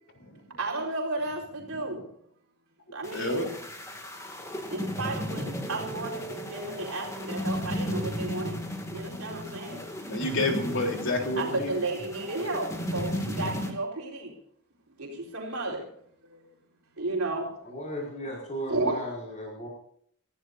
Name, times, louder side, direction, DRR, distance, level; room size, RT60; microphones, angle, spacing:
voice 1, 0.6-2.0 2.9-3.6 4.7-8.6 8.9-9.8 11.4-14.3 15.0-15.9 16.2-16.4 17.0-17.5 18.2-18.3 18.7-18.9, right 2 dB, 70° right, -2 dB, 4.5 m, -33 dB
sound 1, 3.0-13.7, equal, 15° left, 2.3 m, -35 dB
voice 2, 3.1-3.5 10.1-11.7, left 2 dB, 55° left, 2 dB, 3.8 m, -29 dB
voice 3, 17.6-19.7, equal, 35° left, -3 dB, 5.4 m, -36 dB
28.5 x 15.0 x 2.7 m, 0.66 s
head